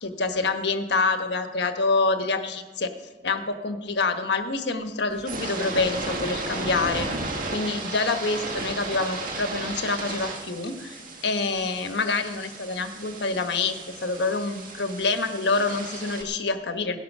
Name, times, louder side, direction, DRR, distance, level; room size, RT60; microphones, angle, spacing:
voice 1, 0.0-2.9 3.2-7.1 7.5-17.0, left 3 dB, 75° left, 7 dB, 1.3 m, -26 dB
sound 1, 5.1-16.2, right 2 dB, 50° right, 1.9 m, -34 dB
17.5 x 11.0 x 5.5 m, 1.2 s
head